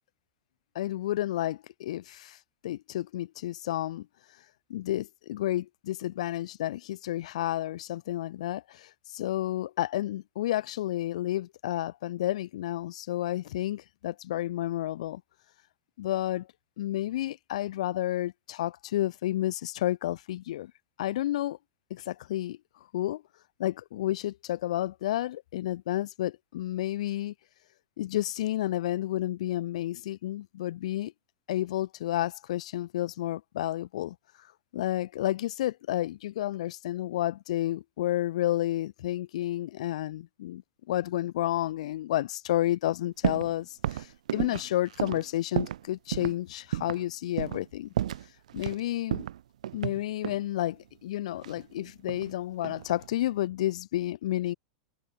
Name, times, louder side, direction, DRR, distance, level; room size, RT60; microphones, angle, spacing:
voice 1, 0.8-2.4 2.6-4.1 4.7-15.2 16.0-16.5 16.8-20.7 21.0-21.6 21.9-22.6 22.9-23.2 23.6-27.3 28.0-31.1 31.5-34.2 34.7-40.6 40.9-44.1 44.3-47.9 48.5-49.2 49.7-54.5, left 14 dB, 75° left, 5.6 m, -31 dB
sound 1, 43.2-43.5 43.8-45.8 46.1-46.4 46.7-47.0 47.4-47.7 48.0-48.8 49.1-50.5 51.4-52.3 52.6-53.1, right 11 dB, 90° right, 5.0 m, -32 dB
supercardioid pair, 150°, 4 cm